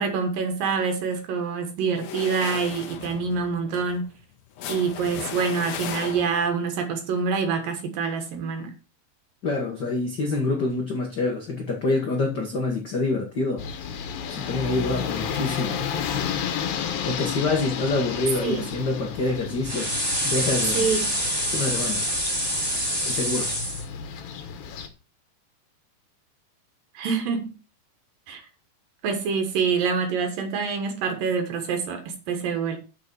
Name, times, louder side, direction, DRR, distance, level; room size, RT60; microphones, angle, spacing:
voice 1, 0.0-4.1 4.7-8.7 18.4-18.7 20.7-21.2 26.9-27.5 28.3-28.4 29.0-32.8, right 5 dB, 75° right, 3.1 m, -26 dB
sound 1, 1.9-6.6, left 8 dB, 65° left, 1.8 m, -36 dB
voice 2, 9.4-13.6 14.3-15.8 17.0-19.9 20.2-20.9 21.5-22.0 23.0-23.5, left 3 dB, 50° left, 1.3 m, -26 dB
sound 2, 13.6-24.9, left 7 dB, 80° left, 3.0 m, -32 dB
sound 3, 19.6-23.8, equal, 5° right, 2.7 m, -26 dB
6.8 x 6.6 x 6.3 m
omnidirectional pair, 4.2 m